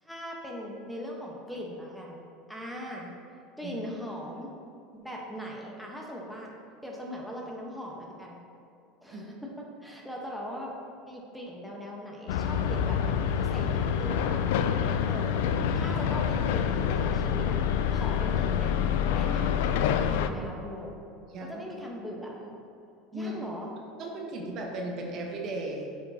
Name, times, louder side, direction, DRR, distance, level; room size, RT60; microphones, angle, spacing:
voice 1, 0.0-2.2 2.5-3.1 3.6-4.5 4.9-6.5 6.8-8.4 9.0-10.7 11.1-14.5 15.1-15.3 15.7-17.6 17.9-18.7 19.1-21.0 21.4-22.6 23.1-23.7, equal, ahead, -2 dB, 1.1 m, -40 dB
sound 1, 12.3-20.3, left 8 dB, 75° left, 0.3 m, -27 dB
voice 2, 21.3-21.6 23.1-23.4 24.0-25.9, right 1 dB, 50° right, 0 dB, 1.1 m, -36 dB
8.0 x 4.9 x 2.8 m, 2.6 s
supercardioid pair, 95°, 0 cm